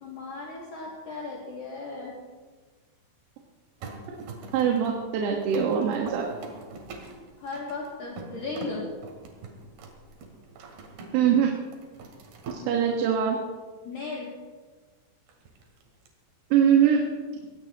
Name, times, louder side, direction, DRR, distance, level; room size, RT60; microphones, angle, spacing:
voice 1, 0.0-2.1 7.4-8.9 12.6-12.9 13.8-14.3, left 3 dB, 50° left, -5 dB, 3.5 m, -36 dB
sound 1, 3.8-11.3 11.6-12.6 15.3-16.1, right 3 dB, 60° right, 3.3 m, -44 dB
voice 2, 4.5-6.3 11.1-11.5 12.6-13.4 16.5-17.0, right 8 dB, 90° right, 0 dB, 4.3 m, -22 dB
23.0 x 18.5 x 3.0 m, 1.4 s
omnidirectional pair, 6.0 m